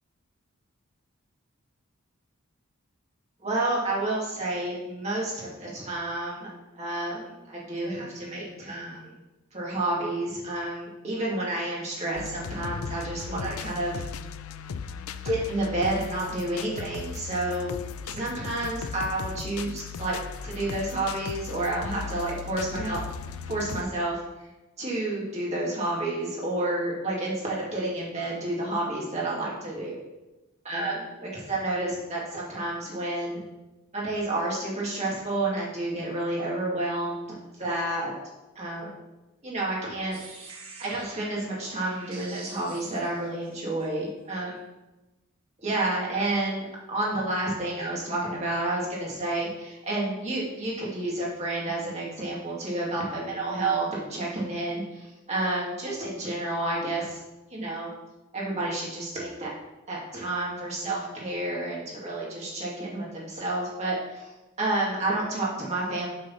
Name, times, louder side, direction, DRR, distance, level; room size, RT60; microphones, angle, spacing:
voice 1, 3.4-6.5 6.7-9.1 9.5-14.0 15.2-17.8 18.0-20.2 20.4-23.0 23.5-24.2 24.8-30.0 30.6-33.4 33.9-38.1 38.5-39.0 39.4-40.5 40.8-44.6 45.6-57.2 57.5-57.9 58.3-59.5 59.9-64.3 64.6-66.1, right 2 dB, 30° right, -5 dB, 2.6 m, -30 dB
sound 1, 12.2-23.8, left 6 dB, 80° left, 0.4 m, -37 dB
sound 2, 40.1-43.9, right 4 dB, 70° right, 1.7 m, -46 dB
8.0 x 5.5 x 5.7 m, 1.0 s
head